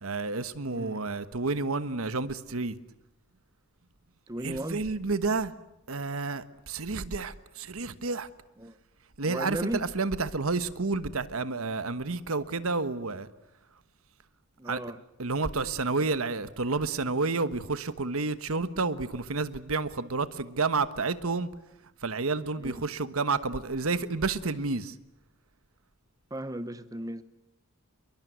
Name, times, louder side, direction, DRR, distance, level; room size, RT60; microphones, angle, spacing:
voice 1, 0.0-2.8 4.4-5.5 5.9-8.3 9.2-13.3 14.7-14.8 15.2-21.5 22.0-24.9, right 3 dB, 80° right, 1.3 m, -30 dB
voice 2, 0.7-1.0 4.3-4.8 8.6-8.8 9.3-9.9 14.6-15.0 22.6-22.8 26.3-27.2, right 1 dB, 15° right, 1.0 m, -35 dB
27.5 x 22.5 x 9.4 m
head